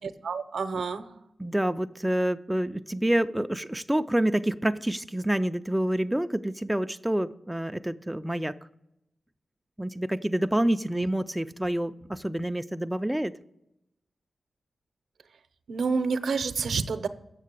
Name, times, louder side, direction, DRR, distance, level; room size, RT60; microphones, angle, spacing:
voice 1, 0.0-1.1 10.9-11.1 15.7-17.1, right 5 dB, 75° right, 11 dB, 0.6 m, -29 dB
voice 2, 1.4-8.6 9.8-13.3, right 1 dB, 5° right, 8 dB, 0.3 m, -27 dB
7.4 x 6.6 x 8.1 m, 0.86 s
wide cardioid pair, 100°, 0 cm